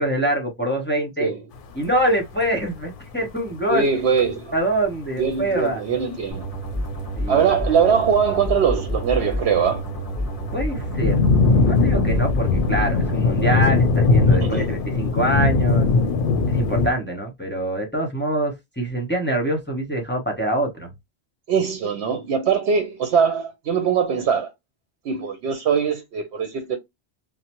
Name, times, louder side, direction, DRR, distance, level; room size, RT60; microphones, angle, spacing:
voice 1, 0.0-1.3 1.7-3.8 4.5-5.8 7.2-7.4 10.5-15.9 16.5-20.9, right 1 dB, 10° left, 0.7 m, -25 dB
sound 1, 1.6-1.7 1.9-2.0 2.2-2.7 3.0-3.1 3.2-3.6 4.2-4.3 4.8-4.9 5.2-5.4 6.0-6.4 6.7-7.3 7.5-8.5 8.8-16.9, left 3 dB, 60° left, 0.6 m, -20 dB
voice 2, 3.7-4.5 5.2-6.5 7.3-9.8 14.3-14.6 21.5-24.5 25.0-26.8, right 6 dB, 85° right, 0.9 m, -21 dB
sound 2, 6.3-13.1, equal, 40° right, 1.5 m, -29 dB
3.2 x 2.1 x 2.9 m
omnidirectional pair, 1.1 m